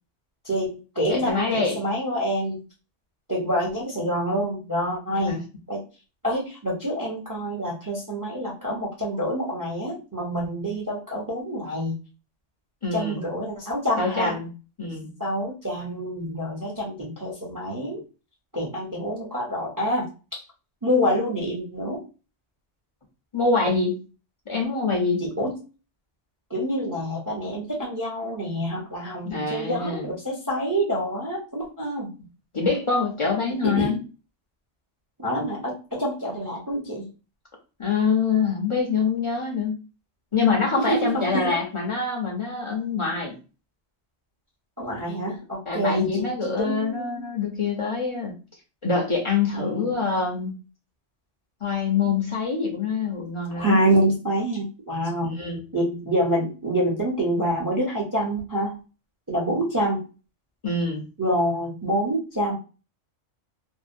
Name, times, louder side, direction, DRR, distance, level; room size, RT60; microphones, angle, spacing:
voice 1, 0.4-2.6 3.3-5.4 5.7-5.8 6.2-11.9 12.9-14.4 15.2-18.0 18.5-20.1 20.3-20.4 20.8-22.0 25.2-25.6 26.5-32.1 33.6-34.0 35.2-37.1 40.7-41.5 44.8-47.3 49.5-50.0 53.5-55.4 55.7-58.7 59.3-60.0 61.2-62.6, equal, 25° right, -4 dB, 0.5 m, -27 dB
voice 2, 1.1-1.8 5.1-5.4 12.8-13.2 14.0-14.5 14.8-15.1 23.3-24.0 24.5-25.2 29.2-30.1 32.5-34.0 37.8-39.8 40.3-43.4 45.7-48.3 48.8-50.5 51.6-53.8 55.2-55.6 60.6-61.1, left 4 dB, 45° left, -1 dB, 0.4 m, -25 dB
2.6 x 2.0 x 2.5 m, 0.33 s
omnidirectional pair, 1.2 m